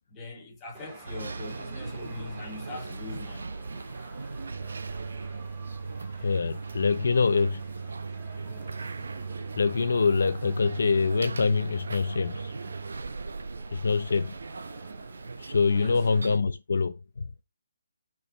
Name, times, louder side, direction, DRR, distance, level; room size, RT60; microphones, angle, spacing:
voice 1, 0.1-3.6 15.7-16.1, left 3 dB, 10° left, 1.6 m, -41 dB
sound 1, 0.8-16.4, right 2 dB, 15° right, 1.8 m, -49 dB
sound 2, 1.1-16.4, right 4 dB, 75° right, 0.5 m, -38 dB
voice 2, 6.2-7.6 9.6-12.5 13.7-14.4 15.4-16.9, left 4 dB, 65° left, 0.6 m, -25 dB
5.2 x 4.7 x 4.2 m
hypercardioid pair, 175°, 0 cm